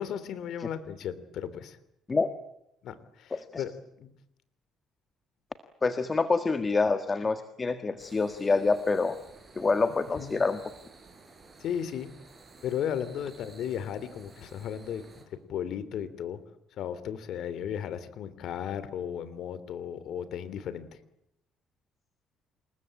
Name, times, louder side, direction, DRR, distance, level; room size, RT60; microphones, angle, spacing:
voice 1, 0.0-1.8 2.8-3.7 4.0-4.1 10.2-10.3 11.6-12.1 12.6-15.0 15.5-16.4 16.7-21.0, left 9 dB, 60° left, 14 dB, 2.9 m, -35 dB
voice 2, 3.3-3.6 5.8-9.2 9.5-10.6, left 4 dB, 20° left, 9 dB, 1.6 m, -26 dB
sound 1, 8.0-15.2, right 3 dB, 25° right, 7.9 m, -53 dB
28.5 x 21.0 x 8.8 m, 0.78 s
cardioid pair, 140°, 0 cm